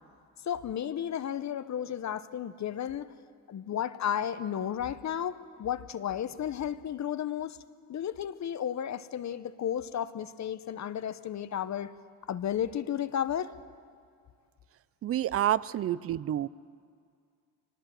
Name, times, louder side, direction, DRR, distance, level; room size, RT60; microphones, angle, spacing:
voice 1, 0.4-3.1 3.5-7.6 7.9-11.9 12.3-13.5, left 9 dB, 45° left, 13 dB, 0.9 m, -33 dB
voice 2, 15.0-16.5, right 12 dB, 40° right, 20 dB, 0.5 m, -28 dB
23.5 x 19.5 x 7.6 m, 2.2 s
cardioid pair, 105°, 38 cm